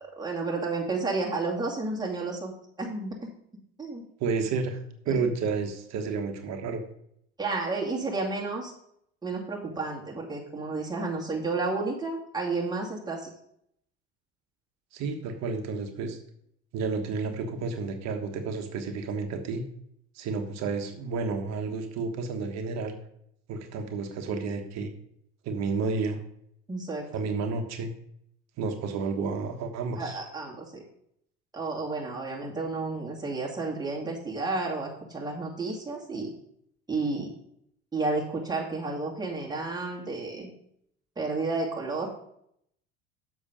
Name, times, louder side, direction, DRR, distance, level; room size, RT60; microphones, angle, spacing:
voice 1, 0.2-2.5 2.8-3.3 3.8-4.0 7.4-8.7 9.2-13.3 26.7-27.2 30.0-30.8 31.5-36.3 36.9-37.3 37.9-40.5 41.2-42.1, right 3 dB, 10° right, -3 dB, 2.3 m, -31 dB
voice 2, 4.2-4.8 5.0-6.8 14.9-16.2 16.7-19.6 20.1-23.0 23.5-24.9 25.4-26.2 27.1-27.9 28.6-30.2, right 4 dB, 55° right, 5 dB, 1.4 m, -31 dB
7.2 x 6.0 x 5.1 m, 0.71 s
hypercardioid pair, 75°, 32 cm